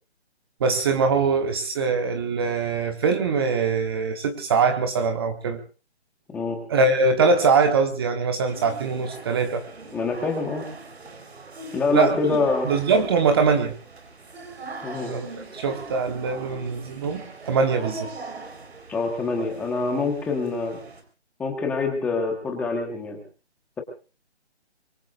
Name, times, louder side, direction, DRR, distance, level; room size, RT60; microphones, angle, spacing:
voice 1, 0.6-5.6 6.7-9.6 11.9-12.2 12.6-13.7 15.0-15.3 15.5-18.1, right 4 dB, 20° right, 6 dB, 1.2 m, -22 dB
voice 2, 6.3-6.6 9.9-10.6 11.7-12.7 14.8-15.1 18.9-20.8 21.4-23.2, left 4 dB, 5° left, 2 dB, 1.2 m, -25 dB
sound 1, 8.5-21.0, right 3 dB, 65° right, 4.3 m, -41 dB
24.0 x 23.0 x 2.5 m, 0.35 s
figure-of-eight pair, 160°, 34 cm